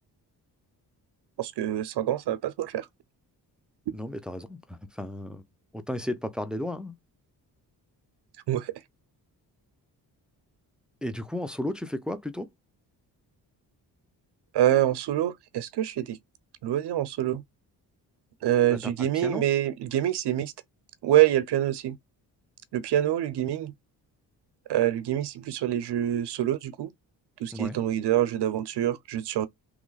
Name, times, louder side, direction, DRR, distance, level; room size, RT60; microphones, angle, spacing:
voice 1, 1.4-2.9 8.5-8.7 14.5-16.2 16.6-17.4 18.4-20.5 21.0-22.0 22.7-23.7 24.7-26.9 27.4-29.5, right 12 dB, 70° right, 0.7 m, -26 dB
voice 2, 3.9-5.4 5.7-6.9 11.0-12.5 18.7-19.4 27.5-27.8, left 1 dB, ahead, 0.5 m, -34 dB
3.1 x 2.2 x 3.9 m
cardioid pair, 70°, 41 cm